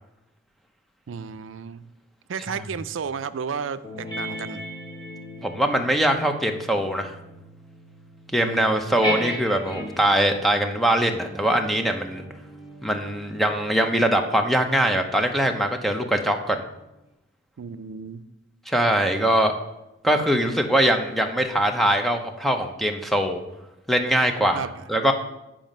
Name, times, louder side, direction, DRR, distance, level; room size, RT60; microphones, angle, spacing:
voice 1, 1.1-1.9 2.3-4.6 8.4-9.0 17.6-18.2 24.5-24.7, right 6 dB, 85° right, 13 dB, 0.4 m, -33 dB
sound 1, 3.8-10.2 11.0-15.9, equal, 25° left, 1.8 m, -37 dB
voice 2, 5.4-7.1 8.3-12.2 12.8-16.6 18.7-19.5 20.0-23.4 23.9-25.1, right 1 dB, ahead, 5 dB, 0.6 m, -22 dB
9.1 x 4.9 x 5.3 m, 0.91 s
head